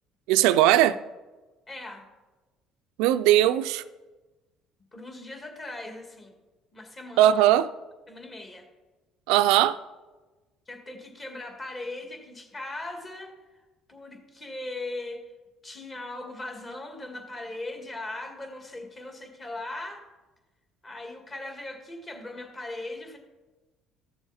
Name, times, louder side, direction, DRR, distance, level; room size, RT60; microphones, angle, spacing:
voice 1, 0.3-1.0 3.0-3.8 7.2-7.7 9.3-9.8, right 13 dB, 90° right, 0.4 m, -19 dB
voice 2, 1.7-2.1 4.9-6.4 6.7-7.5 8.1-8.7 10.7-13.6 13.9-15.3 15.6-20.1 20.8-23.2, left 2 dB, 30° left, 2.2 m, -39 dB
14.0 x 7.0 x 4.2 m
cardioid pair, 105°, 0 cm